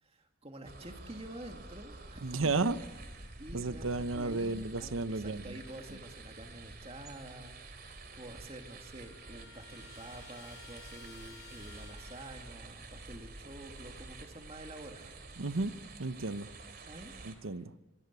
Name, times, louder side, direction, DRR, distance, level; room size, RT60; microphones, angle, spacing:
voice 1, 0.0-2.7 3.4-15.1 16.8-17.1, right 1 dB, 30° right, 5 dB, 2.3 m, -48 dB
sound 1, 0.6-17.3, right 2 dB, 45° right, 3.2 m, -49 dB
voice 2, 2.2-2.8 3.5-5.6 15.4-15.7 16.0-16.5 17.2-17.7, right 3 dB, 75° right, 13 dB, 0.9 m, -33 dB
Trumpet, 7.8-7.9 8.1-12.6, left 7 dB, 60° left, 3.1 m, -56 dB
26.5 x 22.0 x 8.3 m, 1.1 s
head